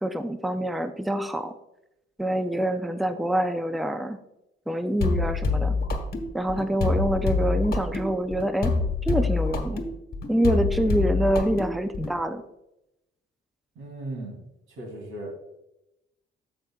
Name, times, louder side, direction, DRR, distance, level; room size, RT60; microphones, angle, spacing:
voice 1, 0.0-1.5 2.2-4.2 4.7-5.8 6.3-8.8 9.0-9.8 10.3-12.4, right 1 dB, ahead, 9 dB, 0.5 m, -26 dB
sound 1, 5.0-12.2, left 4 dB, 50° left, 1.3 m, -26 dB
voice 2, 13.7-14.4 14.8-15.4, right 1 dB, 80° right, 1 dB, 2.9 m, -36 dB
15.5 x 5.2 x 2.3 m, 0.89 s
cardioid pair, 90°, 20 cm